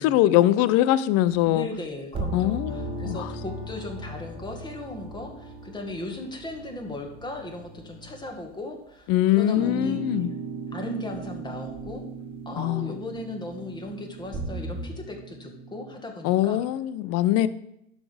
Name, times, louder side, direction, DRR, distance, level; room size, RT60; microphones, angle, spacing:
voice 1, 0.0-1.7 2.3-2.7 3.0-3.3 9.1-10.3 12.6-13.0 16.2-17.5, left 13 dB, 40° left, 16 dB, 0.6 m, -22 dB
sound 1, 1.3-1.4 2.1-6.6 11.7-11.9 14.3-14.9, right 2 dB, 15° right, 2.1 m, -37 dB
voice 2, 1.4-10.0 10.7-12.0 12.5-16.6, left 2 dB, 10° left, 3 dB, 1.8 m, -37 dB
sound 2, 2.6-8.2, left 2 dB, 60° left, 2.8 m, -41 dB
sound 3, 9.5-16.0, right 6 dB, 85° right, 1.6 m, -38 dB
12.0 x 6.5 x 5.0 m, 0.79 s
supercardioid pair, 130°, 38 cm